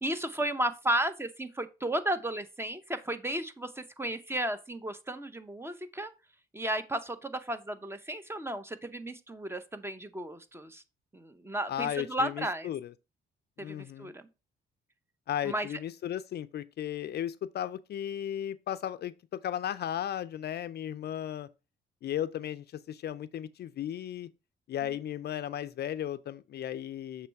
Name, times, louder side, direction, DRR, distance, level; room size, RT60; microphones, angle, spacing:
voice 1, 0.0-6.1 6.5-10.8 11.1-12.7 13.6-14.2 15.4-15.7, right 1 dB, 10° right, 0.7 m, -34 dB
voice 2, 11.7-12.9 13.6-14.1 15.3-21.5 22.0-24.3 24.7-27.3, left 10 dB, 55° left, 0.4 m, -35 dB
6.7 x 3.1 x 4.5 m
cardioid pair, 90°, 20 cm